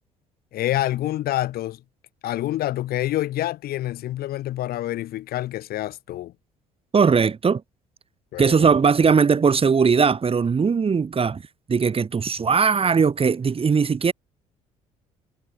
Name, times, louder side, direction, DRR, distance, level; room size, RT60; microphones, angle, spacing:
voice 1, 0.5-1.8 2.2-6.3 8.3-8.7, left 14 dB, 55° left, 4.5 m, -27 dB
voice 2, 6.9-7.6 8.4-11.4 11.7-14.1, right 5 dB, 30° right, 3.3 m, -19 dB
figure-of-eight pair, 50°, 19 cm